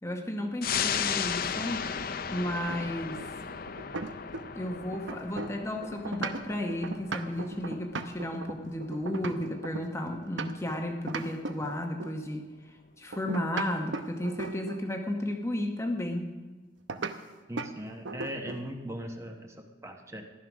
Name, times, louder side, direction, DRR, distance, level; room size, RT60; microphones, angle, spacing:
voice 1, 0.0-1.9 2.3-3.2 4.5-12.5 13.0-16.3, left 1 dB, 15° left, 3 dB, 1.0 m, -33 dB
sound 1, 0.6-11.6 12.0-12.1, left 7 dB, 50° left, 0.6 m, -36 dB
sound 2, 2.7-4.6 4.9-10.7 11.1-12.2 13.1-14.9 16.9-17.2 17.6-17.7 18.0-18.7, right 3 dB, 75° right, 0.8 m, -37 dB
voice 2, 17.5-20.2, equal, 15° right, 4 dB, 1.0 m, -39 dB
14.5 x 11.0 x 6.2 m, 1.3 s
head